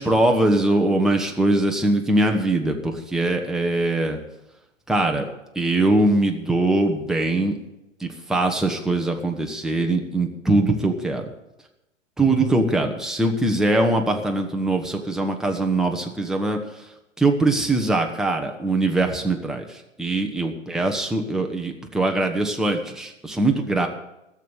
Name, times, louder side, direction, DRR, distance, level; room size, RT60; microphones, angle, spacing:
voice 1, 0.0-4.2 4.9-5.2 5.5-7.6 8.0-11.2 12.2-16.8 17.2-23.9, right 2 dB, ahead, 2 dB, 0.9 m, -22 dB
13.5 x 7.3 x 9.6 m, 0.92 s
figure-of-eight pair, 115°, 38 cm